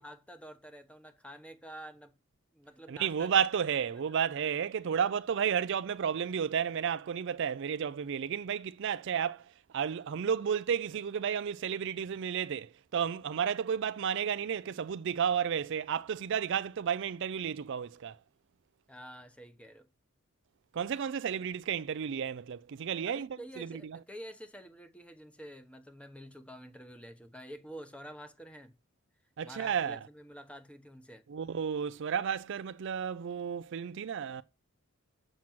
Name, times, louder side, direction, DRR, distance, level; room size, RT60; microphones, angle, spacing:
voice 1, 0.0-2.1 2.5-3.3 18.9-19.9 23.0-28.8 29.4-31.2, equal, 5° left, 1.0 m, -48 dB
voice 2, 2.9-9.5 9.7-18.2 20.7-23.3 23.6-24.0 29.4-30.0 31.3-34.4, right 7 dB, 60° right, 0.4 m, -32 dB
7.3 x 6.0 x 7.7 m
head